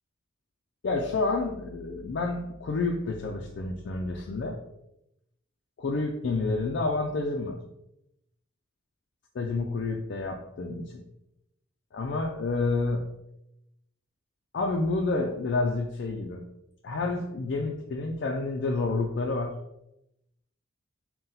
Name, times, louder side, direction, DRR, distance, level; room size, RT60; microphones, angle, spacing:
voice 1, 0.8-4.6 5.8-7.6 9.4-11.0 11.9-13.0 14.5-16.4 16.8-19.6, left 3 dB, 65° left, 1 dB, 0.4 m, -29 dB
3.9 x 2.2 x 4.0 m, 0.84 s
head